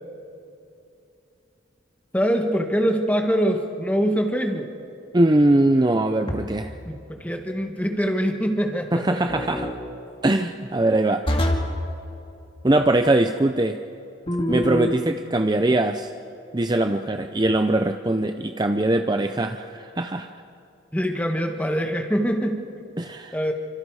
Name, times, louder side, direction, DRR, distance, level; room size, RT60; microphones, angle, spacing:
voice 1, 2.1-4.7 6.8-9.2 20.9-22.6 23.3-23.5, equal, 10° left, 4 dB, 1.6 m, -24 dB
voice 2, 5.1-6.7 8.9-9.7 10.2-11.2 12.6-13.8 14.5-16.1 16.5-20.3 23.0-23.4, right 1 dB, 20° right, 7 dB, 0.5 m, -21 dB
sound 1, 6.3-6.8 9.3-9.8 11.3-11.8 14.3-15.0, left 1 dB, 30° left, 2.1 m, -25 dB
28.5 x 25.5 x 4.9 m, 2.7 s
head